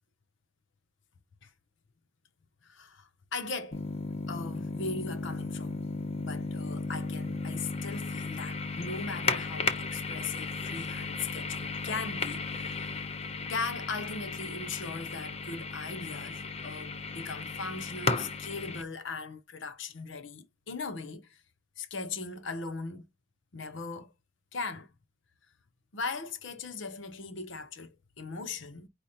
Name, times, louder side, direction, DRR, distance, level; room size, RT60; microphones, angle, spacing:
voice 1, 2.6-3.8 4.2-5.8 6.2-12.9 13.5-21.4 21.8-23.1 23.5-24.1 24.5-24.9 25.9-28.9, left 4 dB, 65° left, 0.8 m, -39 dB
sound 1, 3.7-18.8, left 4 dB, 30° left, 0.6 m, -35 dB
5.0 x 2.4 x 4.2 m
head